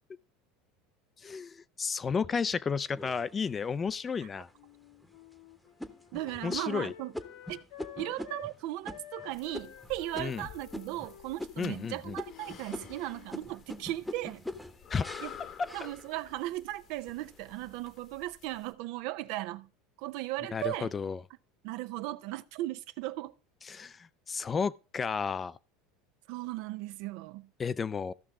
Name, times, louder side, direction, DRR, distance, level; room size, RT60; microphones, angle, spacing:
voice 1, 1.2-4.5 6.4-6.9 10.2-10.4 11.6-12.2 14.9-15.1 15.6-15.9 20.5-21.2 23.7-25.6 27.6-28.1, left 5 dB, 25° left, 0.4 m, -32 dB
sound 1, 3.0-3.8 4.4-4.5 5.0-5.3 5.8-11.1 11.4-11.9 12.2-16.5 17.0-17.5, left 1 dB, 5° left, 0.9 m, -43 dB
Wind instrument woodwind instrument, 4.5-8.5 8.9-13.3, left 11 dB, 75° left, 1.1 m, -51 dB
voice 2, 6.1-7.1 7.5-7.6 7.9-14.4 15.2-15.3 15.7-19.7 20.0-20.9 21.6-23.3 26.3-27.5, right 16 dB, 65° right, 0.5 m, -37 dB
sound 2, 9.3-18.7, left 8 dB, 50° left, 1.0 m, -52 dB
15.0 x 5.9 x 3.6 m
hypercardioid pair, 95°, 0 cm